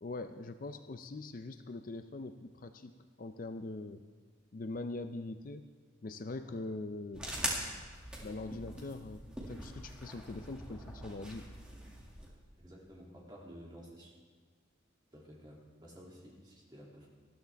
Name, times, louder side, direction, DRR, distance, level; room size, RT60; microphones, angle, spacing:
voice 1, 0.0-4.0 4.5-5.7 6.0-7.3 8.2-9.2 9.5-11.5, left 2 dB, 40° left, 8 dB, 0.5 m, -42 dB
sound 1, 7.1-12.3, equal, 5° right, 2.1 m, -42 dB
voice 2, 12.6-14.1 15.1-17.1, equal, 20° right, -4 dB, 2.6 m, -52 dB
19.5 x 13.0 x 3.5 m, 1.5 s
head